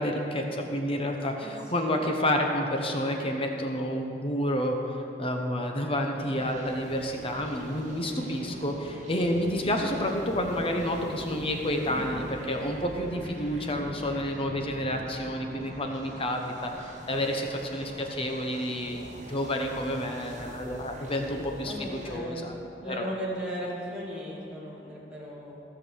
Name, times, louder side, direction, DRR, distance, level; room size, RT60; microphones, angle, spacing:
voice 1, 0.0-4.8 5.2-22.5 22.8-23.1, equal, 30° left, 3 dB, 1.0 m, -30 dB
sound 1, 6.2-22.2, right 1 dB, 45° right, 1.4 m, -43 dB
voice 2, 21.3-22.4 22.8-25.6, equal, 5° right, -7 dB, 2.2 m, -37 dB
15.5 x 6.1 x 6.4 m, 2.7 s
head